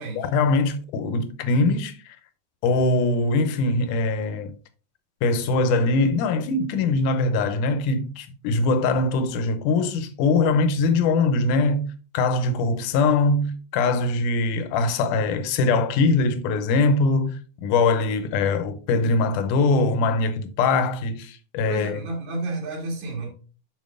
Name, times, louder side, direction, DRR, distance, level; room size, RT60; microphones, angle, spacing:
voice 1, 0.2-2.2 2.6-4.5 5.2-22.0, left 3 dB, 75° left, 2.2 m, -22 dB
voice 2, 21.7-23.3, right 2 dB, 80° right, 3.5 m, -31 dB
7.4 x 5.3 x 3.7 m
omnidirectional pair, 4.0 m